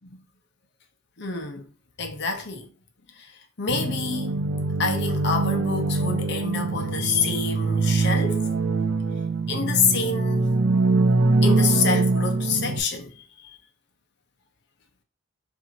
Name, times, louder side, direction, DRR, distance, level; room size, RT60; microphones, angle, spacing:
voice 1, 1.2-1.7 2.0-2.7 3.1-4.4 4.8-8.6 9.5-10.5 11.4-13.6, left 5 dB, 55° left, 0.8 m, -27 dB
sound 1, 3.7-12.8, right 3 dB, 65° right, 0.5 m, -23 dB
5.6 x 2.7 x 2.8 m
head